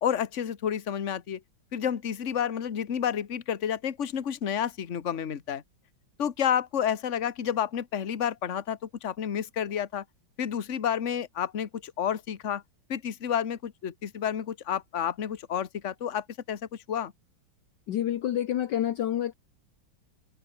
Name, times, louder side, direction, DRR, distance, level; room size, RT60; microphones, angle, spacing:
voice 1, 0.0-1.4 1.7-5.6 6.2-10.0 10.4-12.6 12.9-17.1, left 9 dB, 40° left, 1.5 m, -30 dB
voice 2, 17.9-19.3, left 11 dB, 65° left, 1.4 m, -28 dB
omnidirectional pair, 2.2 m